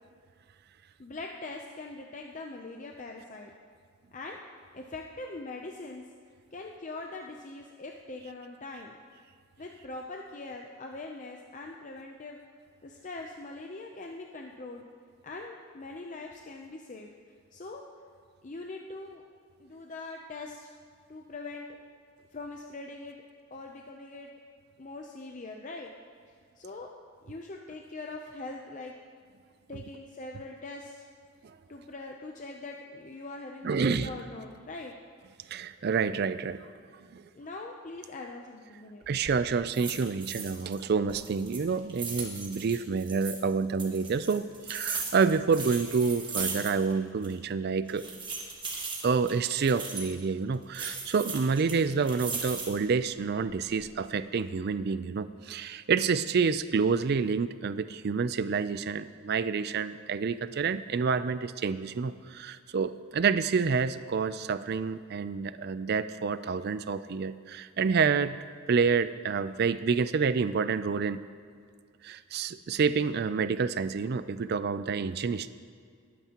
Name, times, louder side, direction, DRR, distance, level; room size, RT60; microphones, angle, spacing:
voice 1, 1.0-3.5 4.1-4.4 4.7-6.0 6.5-9.0 9.6-12.4 12.8-14.9 15.2-17.1 17.5-17.8 18.4-19.2 19.6-20.7 21.1-21.7 22.3-23.2 23.5-24.3 24.8-25.9 26.6-26.9 27.2-28.9 29.7-31.1 31.7-34.9 37.4-39.2, left 2 dB, 35° left, 1 dB, 0.5 m, -42 dB
voice 2, 33.6-34.1 35.5-36.6 37.1-37.2 39.1-48.0 49.0-68.4 68.7-71.2 72.0-75.5, right 5 dB, 45° right, 14 dB, 0.4 m, -28 dB
sound 1, 39.0-39.4 39.7-40.8 41.1-43.4 43.8-47.0 47.2-47.3 47.9-50.1 50.7-52.9 53.4-53.9, right 4 dB, 20° right, 1.5 m, -37 dB
20.5 x 9.2 x 2.9 m, 2.1 s
head